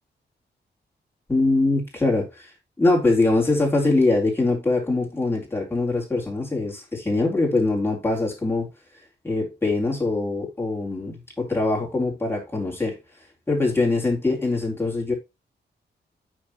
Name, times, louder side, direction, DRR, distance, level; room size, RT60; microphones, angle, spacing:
voice 1, 1.3-2.5 2.8-8.7 9.2-13.0 13.5-15.1, left 2 dB, 10° left, 3.8 m, -23 dB
9.4 x 6.3 x 3.1 m
wide cardioid pair, 155°, 18 cm